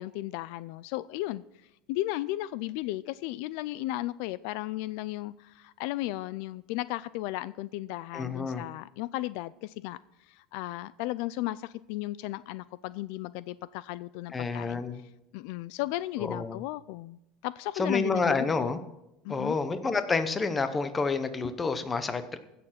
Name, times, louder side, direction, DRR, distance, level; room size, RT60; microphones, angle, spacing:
voice 1, 0.0-1.4 1.9-10.0 10.3-14.8 15.3-18.7 19.2-19.6, left 17 dB, 65° left, 18 dB, 0.3 m, -35 dB
voice 2, 8.1-8.6 14.3-15.0 16.2-16.6 17.8-18.8 19.3-22.4, left 4 dB, 15° left, 10 dB, 0.8 m, -29 dB
16.0 x 6.8 x 5.8 m, 0.88 s
cardioid pair, 165°, 0 cm